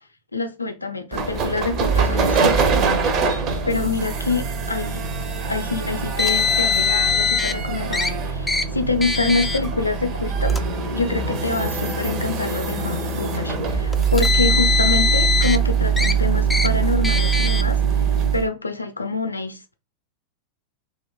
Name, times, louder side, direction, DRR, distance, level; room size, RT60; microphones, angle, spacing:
voice 1, 0.3-3.1 3.6-5.0 5.5-17.8 18.3-19.7, left 3 dB, 90° left, 0.4 m, -26 dB
sound 1, 1.1-18.5, right 6 dB, 40° right, 0.5 m, -23 dB
Car, 6.2-7.5 7.9-8.1 8.5-8.6 9.0-9.6 10.4-10.6 11.6-11.7 13.9-15.6 16.0-16.1 16.5-16.7 17.0-17.6, left 5 dB, 10° left, 0.3 m, -21 dB
2.7 x 2.3 x 2.3 m
figure-of-eight pair, 90°, 0 cm